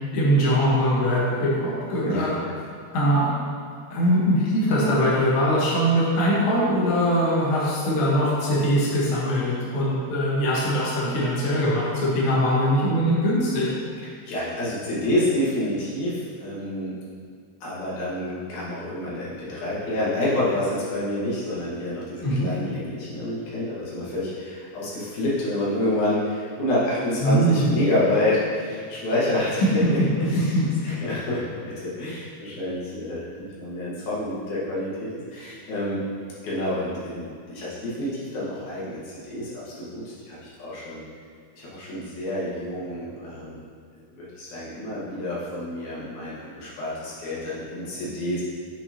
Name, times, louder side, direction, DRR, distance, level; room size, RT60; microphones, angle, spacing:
voice 1, 0.1-2.3 2.9-3.3 3.9-13.7 22.2-22.5 27.2-27.7 29.6-29.9 30.5-30.9, equal, 85° left, -7 dB, 1.1 m, -22 dB
voice 2, 14.0-17.0 17.6-30.6 30.8-34.9 35.3-36.0 36.4-41.0 41.5-43.6 44.1-48.4, left 1 dB, 60° left, -8 dB, 2.5 m, -28 dB
7.0 x 5.4 x 2.8 m, 2.2 s
omnidirectional pair, 4.5 m